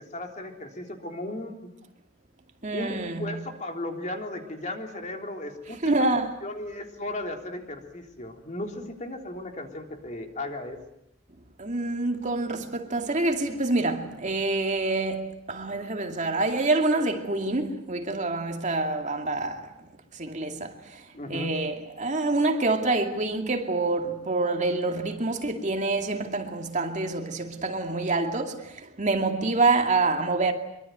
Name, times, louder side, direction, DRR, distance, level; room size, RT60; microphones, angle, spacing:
voice 1, 0.0-1.7 2.7-5.9 6.4-10.8 21.1-21.5, left 1 dB, 35° left, 3.5 m, -36 dB
voice 2, 2.6-3.4 5.7-6.3 11.6-19.7 20.1-21.0 21.3-30.5, right 2 dB, 35° right, 2.4 m, -27 dB
25.0 x 24.0 x 9.3 m
head